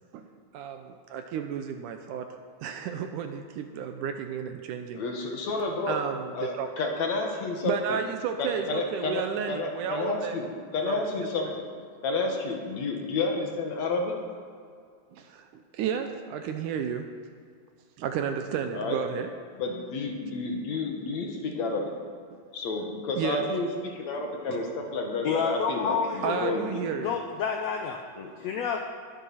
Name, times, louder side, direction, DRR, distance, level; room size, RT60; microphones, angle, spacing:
voice 1, 0.5-2.3 2.6-5.0 5.9-6.7 7.6-10.4 10.9-11.3 15.1-17.1 18.0-19.3 20.4-20.5 22.3-22.4 23.2-23.4 26.2-27.2, right 7 dB, 75° right, 6 dB, 2.0 m, -32 dB
voice 2, 4.9-6.0 6.4-8.0 8.4-10.5 10.7-11.5 12.0-14.2 18.7-19.0 19.6-21.9 22.5-26.9 28.2-28.3, left 3 dB, 60° left, 1 dB, 2.4 m, -30 dB
voice 3, 25.2-26.5 27.0-28.0 28.4-28.8, left 6 dB, 85° left, 4 dB, 1.5 m, -29 dB
20.5 x 7.0 x 5.7 m, 2.2 s
omnidirectional pair, 4.1 m